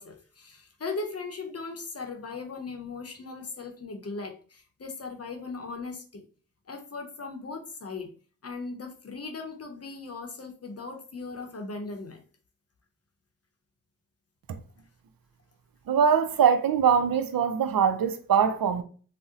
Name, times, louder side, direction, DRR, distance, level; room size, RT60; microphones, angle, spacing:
voice 1, 0.0-6.2 6.7-8.1 8.4-12.2, left 3 dB, 40° left, 0.7 m, -38 dB
voice 2, 15.9-18.8, right 7 dB, 75° right, 0.5 m, -22 dB
2.7 x 2.0 x 3.6 m
cardioid pair, 50°, 36 cm